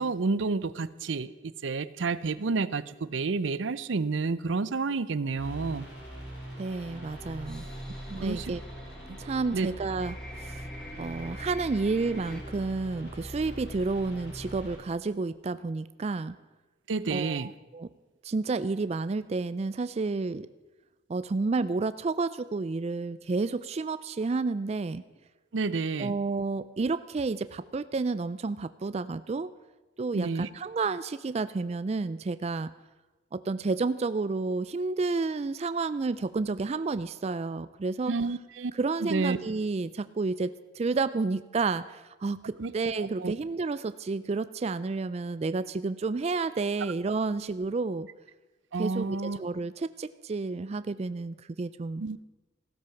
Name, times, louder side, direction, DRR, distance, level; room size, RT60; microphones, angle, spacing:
voice 1, 0.0-5.9 8.2-8.5 9.1-9.2 9.5-9.7 16.9-17.5 25.5-26.1 30.1-30.5 38.1-38.7 39.0-39.4 42.6-42.7 43.0-43.3 48.7-49.4 52.0-52.2, right 4 dB, 85° right, 16 dB, 0.6 m, -30 dB
sound 1, 5.4-14.8, equal, 65° left, 4.2 m, -42 dB
sound 2, 6.2-12.4, left 1 dB, 5° left, 1.8 m, -49 dB
voice 2, 6.6-7.6 8.1-8.6 9.2-10.6 11.0-16.4 17.1-17.9 18.2-20.5 21.1-25.0 26.0-29.5 30.0-32.7 33.3-38.2 38.7-48.1 48.8-52.0, right 3 dB, 35° right, 14 dB, 0.4 m, -30 dB
15.5 x 12.5 x 5.8 m, 1.1 s
head